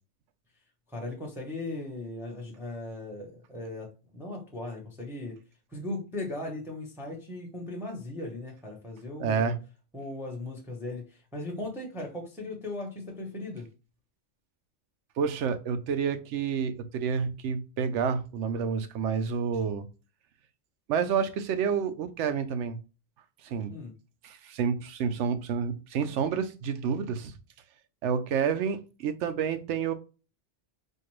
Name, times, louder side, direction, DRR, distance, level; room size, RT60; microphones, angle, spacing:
voice 1, 0.9-5.4 5.7-9.5 9.9-13.7 23.7-23.9, left 2 dB, ahead, 0.7 m, -38 dB
voice 2, 9.2-9.6 15.2-19.9 20.9-22.8 23.4-23.8 24.2-27.3 28.0-29.9, right 6 dB, 85° right, 0.9 m, -29 dB
4.3 x 2.3 x 3.1 m
omnidirectional pair, 1.2 m